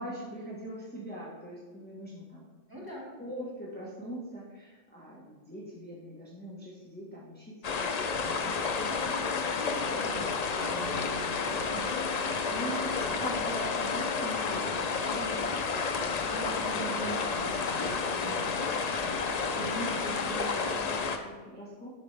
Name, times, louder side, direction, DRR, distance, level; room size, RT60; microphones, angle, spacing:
voice 1, 0.0-2.5 3.2-8.6 9.0-9.3 12.5-16.1 16.5-17.1 17.3-18.5 19.2-21.9, right 1 dB, 10° left, -7 dB, 1.2 m, -42 dB
voice 2, 2.7-3.1 9.3-12.8 16.3-18.8 19.5-19.9, right 2 dB, 15° right, -5 dB, 1.8 m, -43 dB
sound 1, 7.6-21.2, left 5 dB, 55° left, 0.4 m, -31 dB
8.2 x 6.0 x 3.3 m, 1.3 s
omnidirectional pair, 1.3 m